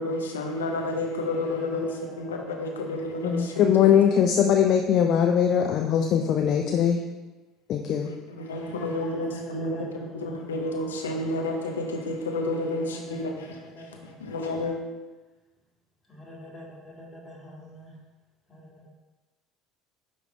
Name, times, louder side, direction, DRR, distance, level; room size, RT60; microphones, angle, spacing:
voice 1, 0.0-3.9 8.4-13.6 14.0-14.8, left 2 dB, 80° left, 1 dB, 0.8 m, -30 dB
voice 2, 1.2-4.0 8.5-10.4 12.5-14.7 16.1-18.0 18.5-18.9, equal, 25° left, -3 dB, 1.9 m, -45 dB
voice 3, 3.2-7.0 7.7-8.1, left 8 dB, 50° left, 3 dB, 0.4 m, -21 dB
9.7 x 3.3 x 3.2 m, 1.2 s
figure-of-eight pair, 65°, 0 cm